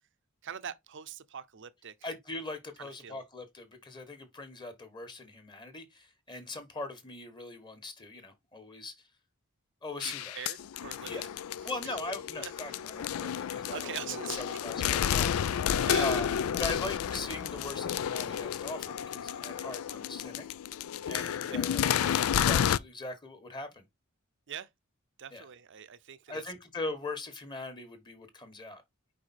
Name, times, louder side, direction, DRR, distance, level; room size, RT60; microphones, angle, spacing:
voice 1, 0.4-1.9 2.8-3.2 10.0-11.3 11.6-12.0 12.4-12.8 13.7-14.6 15.8-16.3 16.7-16.8 21.5-22.0 24.5-24.7 25.2-26.4, right 8 dB, 60° right, 0.7 m, -43 dB
voice 2, 2.0-9.1 9.8-10.3 11.0-11.2 11.6-14.2 14.6-20.4 20.7-23.8 25.3-25.4 26.3-28.8, left 2 dB, 20° left, 1.3 m, -40 dB
sound 1, 10.0-22.8, left 9 dB, 85° left, 0.4 m, -31 dB
5.0 x 4.8 x 4.3 m
head